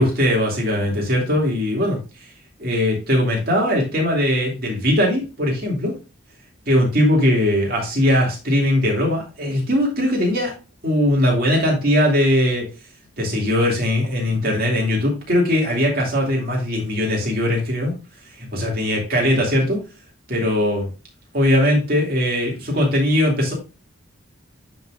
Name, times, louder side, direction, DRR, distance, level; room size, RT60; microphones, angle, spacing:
voice 1, 0.0-2.0 2.6-5.9 6.7-10.5 10.8-12.7 13.2-17.9 18.5-19.8 20.3-20.9 21.3-23.5, left 1 dB, 50° right, -2 dB, 2.5 m, -20 dB
11.5 x 4.1 x 2.4 m, 0.31 s
head